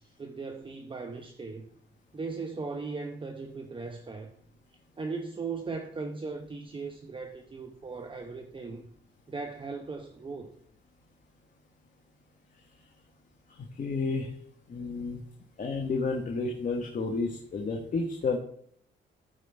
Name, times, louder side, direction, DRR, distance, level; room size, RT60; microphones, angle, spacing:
voice 1, 0.0-1.7 2.1-4.3 5.0-8.9 9.3-10.5, right 4 dB, 25° right, 0.9 m, -38 dB
voice 2, 13.8-14.3 14.7-15.2 15.6-18.4, left 4 dB, 40° left, 1.3 m, -31 dB
14.0 x 5.2 x 3.4 m
cardioid pair, 90°, 20 cm